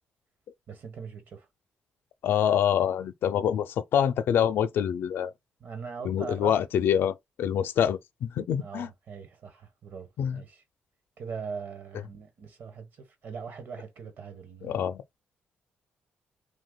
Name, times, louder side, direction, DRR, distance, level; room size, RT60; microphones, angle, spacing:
voice 1, 0.7-1.5 5.6-6.6 8.6-10.6 11.2-14.9, right 5 dB, 60° right, 1.2 m, -41 dB
voice 2, 2.2-5.3 6.0-8.9 10.2-10.4 14.6-15.0, left 9 dB, 75° left, 0.5 m, -26 dB
2.9 x 2.3 x 3.8 m
cardioid pair, 120°, 4 cm